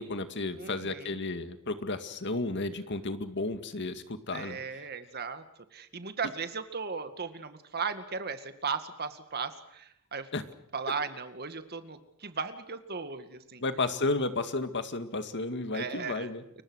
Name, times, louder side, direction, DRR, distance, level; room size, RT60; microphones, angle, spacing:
voice 1, 0.0-4.6 10.3-10.4 13.6-16.4, left 2 dB, 55° left, 9 dB, 2.1 m, -33 dB
voice 2, 0.6-1.2 4.3-5.4 5.7-10.3 10.7-13.6 15.7-16.3, right 5 dB, 45° right, 9 dB, 2.1 m, -36 dB
30.0 x 23.0 x 6.4 m, 0.76 s
head